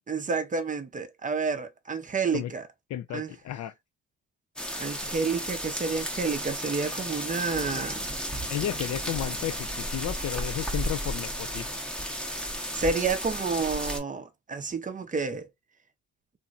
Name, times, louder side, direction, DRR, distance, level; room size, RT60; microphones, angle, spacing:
voice 1, 0.1-2.6 3.1-3.3 4.8-8.1 12.7-15.5, right 4 dB, 25° right, 0.6 m, -30 dB
voice 2, 2.9-3.7 8.5-11.7, left 12 dB, 60° left, 0.5 m, -33 dB
sound 1, 4.6-14.0, equal, 5° left, 0.8 m, -33 dB
2.8 x 2.6 x 2.4 m
cardioid pair, 90°, 30 cm